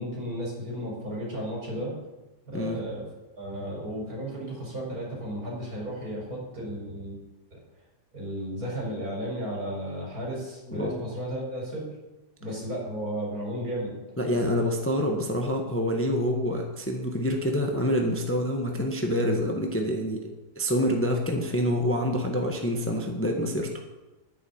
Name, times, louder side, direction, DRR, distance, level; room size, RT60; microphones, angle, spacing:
voice 1, 0.0-1.9 2.5-3.0 3.4-7.2 7.5-7.6 8.1-11.9 12.4-14.0, equal, 60° right, -2 dB, 5.2 m, -34 dB
voice 2, 14.2-20.2 20.6-23.7, equal, 10° left, 2 dB, 1.2 m, -26 dB
11.5 x 9.5 x 7.1 m, 1.1 s
omnidirectional pair, 1.8 m